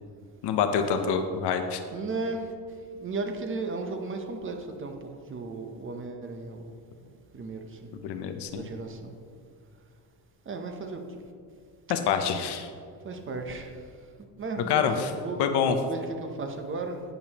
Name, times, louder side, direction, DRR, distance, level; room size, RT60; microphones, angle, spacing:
voice 1, 0.4-1.8 8.0-8.7 11.9-12.7 14.7-15.1 15.4-15.8, left 7 dB, 80° left, 7 dB, 0.8 m, -26 dB
voice 2, 1.9-2.4 3.0-6.7 7.3-7.9 8.5-9.1 10.5-11.0 13.0-13.7 14.4-17.0, right 3 dB, 30° right, 5 dB, 0.8 m, -35 dB
10.5 x 8.8 x 2.9 m, 2.3 s
cardioid pair, 155°, 40 cm